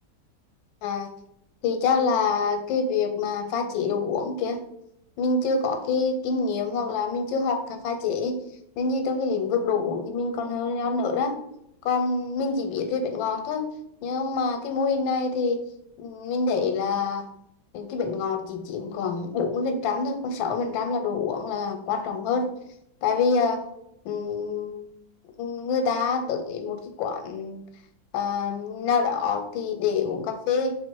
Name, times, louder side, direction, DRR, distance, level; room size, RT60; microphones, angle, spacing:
voice 1, 1.6-4.6 5.2-8.4 8.8-11.3 11.8-13.6 14.0-15.6 16.0-17.2 17.7-22.5 23.0-23.7 24.0-24.8 25.4-27.6 28.1-30.7, left 4 dB, 85° left, 6 dB, 1.4 m, -26 dB
3.4 x 3.0 x 4.5 m, 0.77 s
omnidirectional pair, 2.1 m